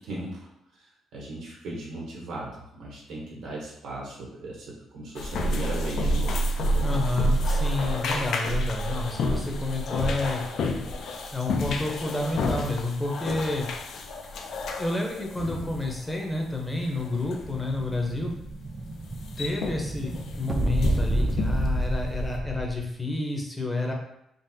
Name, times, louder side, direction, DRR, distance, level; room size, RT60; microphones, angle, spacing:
voice 1, 0.0-6.5 6.8-6.9, right 1 dB, 80° right, -4 dB, 0.9 m, -38 dB
sound 1, 5.1-22.4, left 1 dB, 70° left, 0.4 m, -30 dB
voice 2, 6.8-10.4 11.3-13.7 14.8-18.3 19.4-23.9, left 2 dB, 15° left, 1 dB, 0.7 m, -30 dB
Explosion, 17.0-22.8, right 1 dB, 30° right, 0.3 m, -30 dB
3.8 x 2.0 x 2.7 m, 0.80 s
cardioid pair, 90°, 0 cm